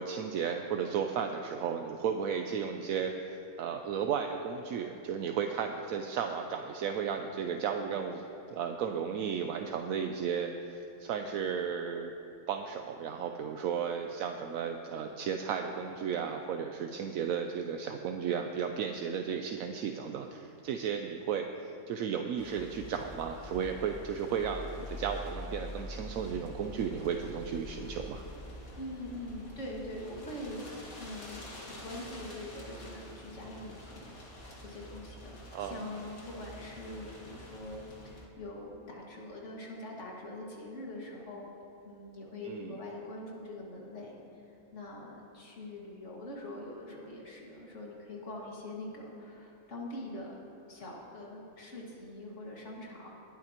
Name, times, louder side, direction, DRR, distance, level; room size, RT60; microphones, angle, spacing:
voice 1, 0.0-8.2 8.5-12.1 12.5-28.2 35.5-35.8 42.4-42.8, right 7 dB, 75° right, 5 dB, 1.0 m, -34 dB
sound 1, 22.4-38.2, left 1 dB, 75° left, 2.3 m, -46 dB
voice 2, 28.7-34.1 34.6-41.6 41.8-44.1 44.5-50.3 50.7-53.1, left 1 dB, 55° left, -3 dB, 2.3 m, -43 dB
21.0 x 11.5 x 2.9 m, 3.0 s
omnidirectional pair, 1.5 m